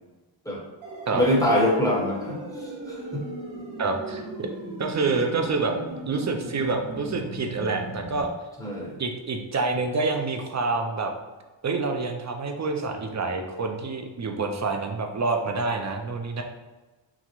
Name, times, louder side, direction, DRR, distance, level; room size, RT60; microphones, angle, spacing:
sound 1, 0.8-8.2, right 1 dB, 90° right, 1.3 m, -37 dB
voice 1, 1.1-3.2 8.6-8.9, left 1 dB, 5° left, -4 dB, 1.0 m, -24 dB
voice 2, 3.8-4.5 4.8-5.7 6.1-8.3 9.0-11.1 11.6-16.4, right 3 dB, 40° right, 4 dB, 0.4 m, -27 dB
5.9 x 2.0 x 3.0 m, 1.2 s
wide cardioid pair, 130°, 46 cm